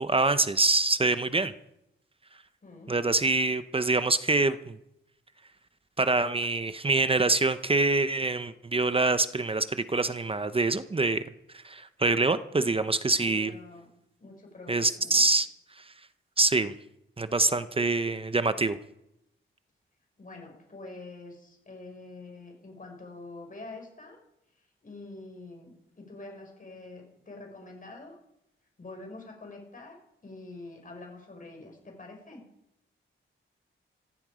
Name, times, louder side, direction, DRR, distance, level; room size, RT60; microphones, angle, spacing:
voice 1, 0.0-1.5 2.9-4.8 6.0-11.2 11.6-13.5 14.7-15.5 16.4-16.7 17.2-18.8, right 3 dB, 25° right, 12 dB, 0.8 m, -25 dB
voice 2, 2.6-3.0 12.5-12.7 13.2-13.9 14.2-15.2 20.2-24.2 24.8-25.7 26.0-28.2 28.8-30.0 30.2-32.4, left 2 dB, 40° left, 2 dB, 5.6 m, -45 dB
15.5 x 15.0 x 5.0 m, 0.82 s
wide cardioid pair, 100°, 21 cm